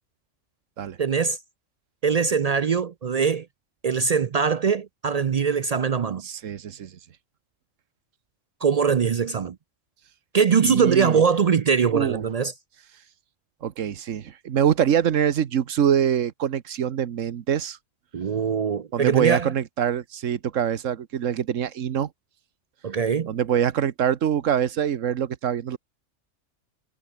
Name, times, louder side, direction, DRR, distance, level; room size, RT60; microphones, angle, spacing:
voice 1, 1.0-1.4 2.0-3.5 3.8-6.2 8.6-9.6 10.3-12.5 18.1-19.5 22.8-23.3, right 6 dB, 60° right, 0.4 m, -22 dB
voice 2, 6.2-6.9 10.6-11.2 11.9-12.2 13.6-17.8 18.9-22.1 23.3-25.8, right 9 dB, 85° right, 1.4 m, -24 dB
omnidirectional pair, 1.3 m